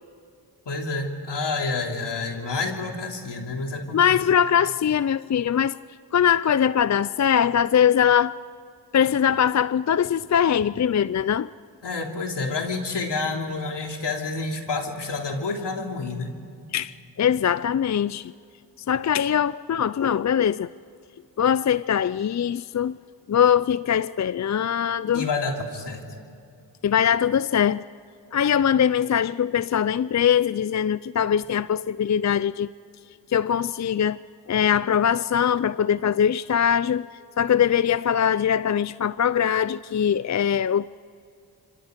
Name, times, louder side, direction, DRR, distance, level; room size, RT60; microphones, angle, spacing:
voice 1, 0.6-4.2 11.8-16.3 25.1-26.0, left 3 dB, 70° left, 3.2 m, -29 dB
voice 2, 3.9-5.8 6.1-8.4 8.9-11.5 16.7-18.3 18.9-20.7 21.4-23.0 23.3-25.3 26.8-27.8 28.3-32.7 33.3-34.2 34.5-37.1 37.4-40.9, left 8 dB, 40° left, 0.5 m, -22 dB
26.0 x 25.5 x 5.2 m
cardioid pair, 45°, 43 cm